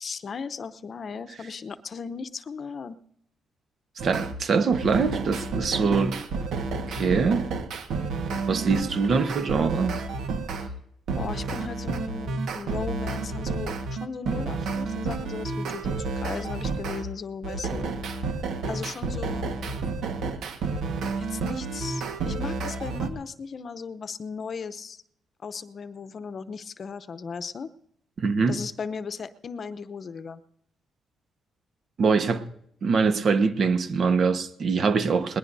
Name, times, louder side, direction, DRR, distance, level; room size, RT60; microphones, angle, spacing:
voice 1, 0.0-3.0 5.7-6.1 11.2-17.9 18.7-19.5 21.2-25.0 25.4-27.7 28.5-30.4, left 5 dB, 45° left, 0.8 m, -36 dB
voice 2, 4.0-6.2 6.9-7.5 8.5-10.0 28.2-28.6 32.0-32.4 32.8-35.4, right 5 dB, 55° right, 1.1 m, -23 dB
sound 1, 4.0-4.3 4.7-10.7 11.1-17.0 17.4-23.1, right 4 dB, 75° right, 1.5 m, -30 dB
21.0 x 19.5 x 2.7 m
cardioid pair, 90°, 0 cm